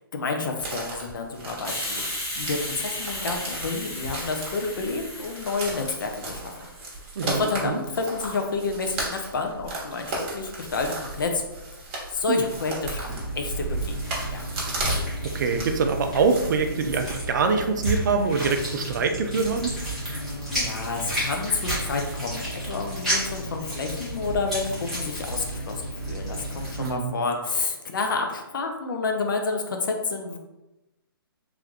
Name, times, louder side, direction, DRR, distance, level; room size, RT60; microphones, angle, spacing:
voice 1, 0.1-6.7 7.2-11.4 12.1-13.1 13.4-13.9 14.3-14.4 20.1-30.4, left 4 dB, 60° left, 4 dB, 0.7 m, -29 dB
sound 1, 0.6-17.5, right 2 dB, 30° right, 1.2 m, -35 dB
Hiss, 1.6-7.0, left 1 dB, 20° left, 1.4 m, -35 dB
voice 2, 7.2-7.8 12.3-12.4 15.2-19.7 26.8-27.1, right 4 dB, 55° right, 6 dB, 0.5 m, -24 dB
sound 2, 13.1-26.9, right 1 dB, ahead, 1.2 m, -31 dB
3.4 x 3.1 x 3.6 m, 1.0 s
hypercardioid pair, 155°, 12 cm